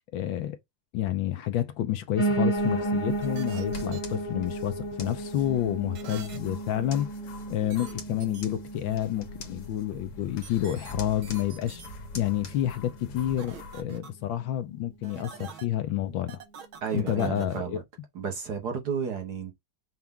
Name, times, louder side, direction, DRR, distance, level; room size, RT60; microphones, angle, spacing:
voice 1, 0.1-0.6 0.9-7.1 7.5-11.8 12.1-16.4 16.9-17.8, left 12 dB, 70° left, 1.3 m, -29 dB
Piano, 2.2-11.3 11.7-12.8 13.1-13.2 13.4-13.5 13.8-13.9 14.4-14.5, right 2 dB, 25° left, 0.6 m, -33 dB
sound 1, 2.6-13.8, left 2 dB, 90° left, 2.2 m, -44 dB
sound 2, 3.2-4.0 5.9-6.4 7.7-7.9 8.2-8.4 10.4-10.9 11.2-11.9 13.4-14.1 15.0-15.7 16.3-17.6, right 7 dB, 70° right, 1.8 m, -45 dB
voice 2, 16.8-17.8 18.1-19.5, right 7 dB, 55° right, 1.6 m, -32 dB
5.8 x 2.5 x 3.6 m
omnidirectional pair, 2.3 m